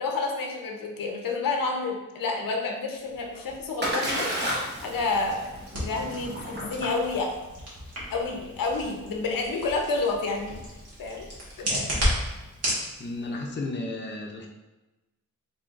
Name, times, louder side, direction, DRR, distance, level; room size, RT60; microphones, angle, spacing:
voice 1, 0.0-4.3 4.8-5.5 5.7-7.3 8.1-10.6 11.0-11.3 11.6-11.9, left 3 dB, 90° left, 1 dB, 0.7 m, -29 dB
Splash splatter, 3.1-13.0, equal, 30° right, 0.9 m, -35 dB
sound 1, 4.8-12.8, equal, 50° right, 1.5 m, -33 dB
voice 2, 13.0-14.5, left 2 dB, 35° left, 0 dB, 0.6 m, -33 dB
3.6 x 3.6 x 2.5 m, 1.1 s
wide cardioid pair, 100°, 33 cm